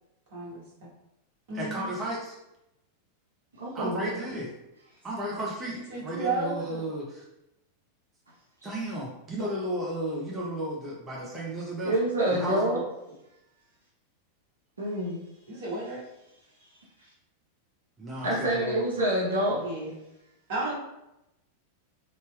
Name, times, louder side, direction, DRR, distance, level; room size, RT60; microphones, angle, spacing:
voice 1, 0.3-0.6 1.5-1.9 5.7-6.9 12.5-12.8 15.5-16.0 19.5-19.9 20.5-20.7, right 2 dB, 50° right, -6 dB, 1.3 m, -33 dB
voice 2, 1.5-2.4 3.7-4.5 5.0-7.2 8.6-11.9 12.3-12.7 18.0-18.8, right 1 dB, 20° right, -5 dB, 0.8 m, -34 dB
voice 3, 3.6-4.1 11.8-12.8 14.8-15.2 17.0-17.1 18.2-19.6, right 1 dB, 75° right, -6 dB, 0.7 m, -27 dB
3.2 x 2.8 x 2.3 m, 0.89 s
figure-of-eight pair, 90°, 0 cm